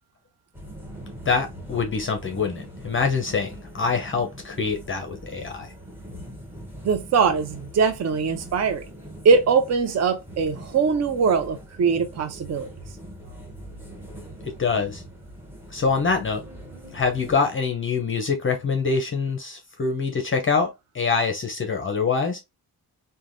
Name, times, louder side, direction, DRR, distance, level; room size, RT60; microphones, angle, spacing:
sound 1, 0.5-17.4, equal, 5° right, 0.9 m, -42 dB
voice 1, 1.3-5.7 14.5-15.0 15.7-16.4 16.9-22.4, left 5 dB, 30° left, 0.6 m, -25 dB
voice 2, 6.8-8.8 9.2-12.7, right 5 dB, 45° right, 0.6 m, -21 dB
3.2 x 2.2 x 2.5 m
cardioid pair, 95°, 38 cm